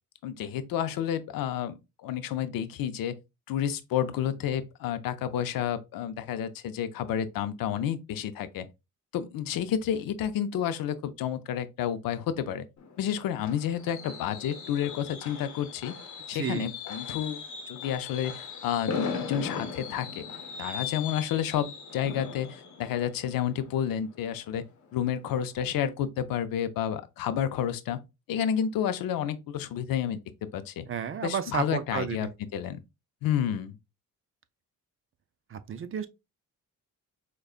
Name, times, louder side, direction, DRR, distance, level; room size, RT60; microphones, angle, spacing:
voice 1, 0.2-3.2 3.5-8.7 9.1-12.7 13.0-15.9 16.3-17.4 17.7-20.2 20.6-24.6 24.9-28.0 28.3-30.2 30.5-30.9 31.2-32.8 33.2-33.8, left 9 dB, 80° left, 0.5 m, -30 dB
Fireworks, 12.8-24.5 24.8-25.1 25.4-25.5, left 5 dB, 55° left, 0.9 m, -38 dB
voice 2, 16.3-16.7 30.9-32.3 35.5-36.1, right 7 dB, 40° right, 0.4 m, -32 dB
4.9 x 2.2 x 2.4 m
cardioid pair, 90°, 34 cm